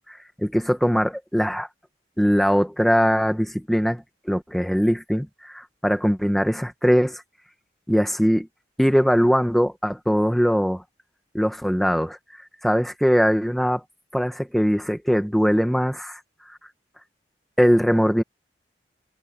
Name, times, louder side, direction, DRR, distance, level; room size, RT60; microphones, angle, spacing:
voice 1, 0.1-1.7 2.2-7.2 7.9-8.5 8.8-10.8 11.3-12.2 12.6-13.8 14.1-16.2 17.6-18.2, equal, ahead, 1.5 m, -21 dB
head